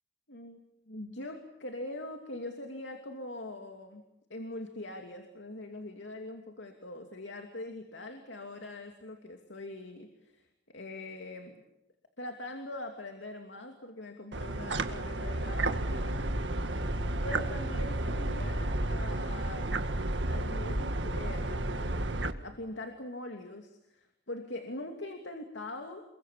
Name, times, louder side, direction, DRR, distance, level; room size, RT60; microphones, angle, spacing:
voice 1, 0.3-0.6 0.9-4.0 4.3-11.5 12.2-16.2 17.2-19.8 20.2-22.1 22.4-26.0, left 2 dB, 85° left, 4 dB, 2.7 m, -42 dB
sound 1, 14.3-22.3, right 1 dB, 80° right, 1.9 m, -32 dB
28.5 x 22.5 x 8.5 m, 0.83 s
head